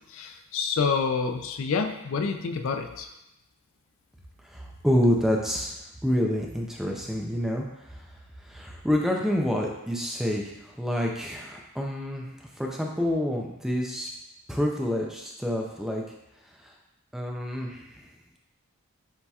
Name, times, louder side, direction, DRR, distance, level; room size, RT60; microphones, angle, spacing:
voice 1, 0.1-3.1, left 5 dB, 65° left, 6 dB, 0.4 m, -28 dB
voice 2, 4.4-5.7 6.0-8.0 8.4-14.1 14.5-16.0 16.6-16.7 17.1-18.1, equal, ahead, -1 dB, 0.4 m, -28 dB
7.2 x 2.8 x 2.3 m, 0.87 s
head